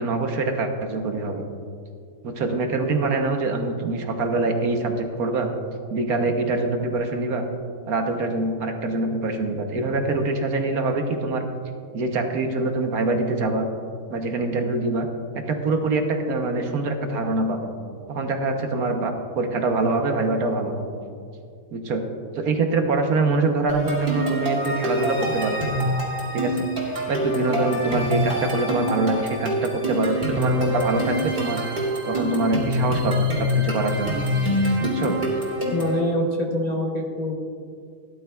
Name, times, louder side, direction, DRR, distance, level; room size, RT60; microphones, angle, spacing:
voice 1, 0.0-1.4 2.2-5.5 5.9-7.5 7.9-11.5 11.9-13.7 14.1-15.1 15.3-17.7 18.1-20.9 21.7-22.0 22.3-25.6 26.3-26.6 27.1-31.6 32.0-34.2 34.8-35.2, right 3 dB, 65° right, 4 dB, 1.4 m, -24 dB
sound 1, 23.7-36.0, equal, 35° right, 2.9 m, -25 dB
voice 2, 35.7-37.4, left 1 dB, 35° left, -2 dB, 0.8 m, -25 dB
17.0 x 11.5 x 2.3 m, 2.3 s
omnidirectional pair, 1.7 m